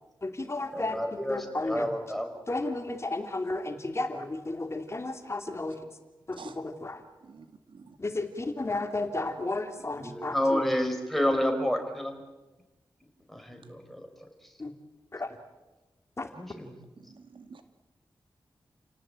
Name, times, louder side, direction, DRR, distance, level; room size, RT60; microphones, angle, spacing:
voice 1, 0.2-1.9 2.5-5.8 6.3-7.0 8.0-10.6 14.6-14.7 15.1-15.4 16.2-16.3, left 2 dB, 35° left, 5 dB, 2.7 m, -33 dB
voice 2, 0.7-2.4 9.9-12.1 13.3-14.3 16.4-16.7, equal, ahead, 4 dB, 4.9 m, -30 dB
voice 3, 7.2-8.0 17.0-17.6, right 5 dB, 80° right, 7 dB, 2.3 m, -49 dB
30.0 x 18.5 x 8.9 m, 1.1 s
wide cardioid pair, 110°, 8 cm